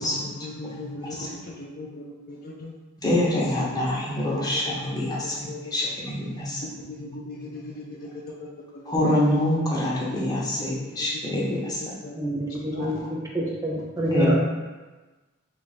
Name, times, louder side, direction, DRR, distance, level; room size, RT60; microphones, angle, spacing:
voice 1, 0.0-2.7 3.6-3.7 4.2-5.7 6.5-9.1 10.1-12.2 12.7-13.0, left 2 dB, 45° left, -1 dB, 0.4 m, -39 dB
voice 2, 3.0-6.6 8.9-11.8 12.8-12.9 14.1-14.4, left 1 dB, 20° left, -5 dB, 0.7 m, -25 dB
voice 3, 12.2-13.0 13.3-14.4, right 1 dB, 15° right, -3 dB, 0.5 m, -26 dB
2.9 x 2.4 x 4.1 m, 1.2 s
head